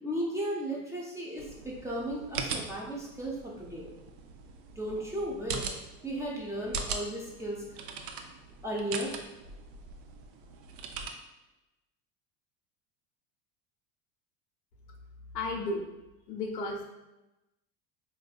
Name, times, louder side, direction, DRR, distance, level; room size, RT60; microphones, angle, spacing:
voice 1, 0.0-3.9 4.8-5.7 6.0-7.6 8.6-9.1, right 1 dB, 5° right, -4 dB, 0.5 m, -35 dB
sound 1, 1.4-11.1, right 5 dB, 55° right, 0.5 m, -41 dB
voice 2, 15.3-15.9 16.3-16.8, left 2 dB, 80° left, 0 dB, 0.8 m, -33 dB
4.0 x 2.6 x 2.3 m, 1.0 s
hypercardioid pair, 75°, 48 cm